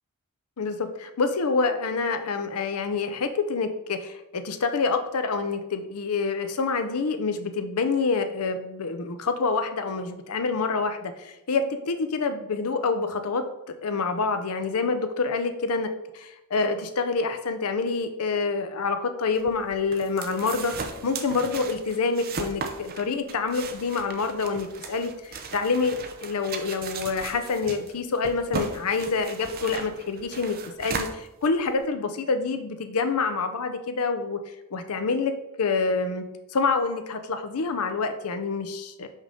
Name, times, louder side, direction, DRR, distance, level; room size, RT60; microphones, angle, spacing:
voice 1, 0.6-34.4 34.7-35.3 35.6-36.2 36.5-39.1, left 4 dB, 80° left, 8 dB, 0.6 m, -27 dB
sound 1, 19.4-31.8, right 4 dB, 45° right, 0.6 m, -37 dB
5.5 x 5.2 x 3.6 m, 0.91 s
head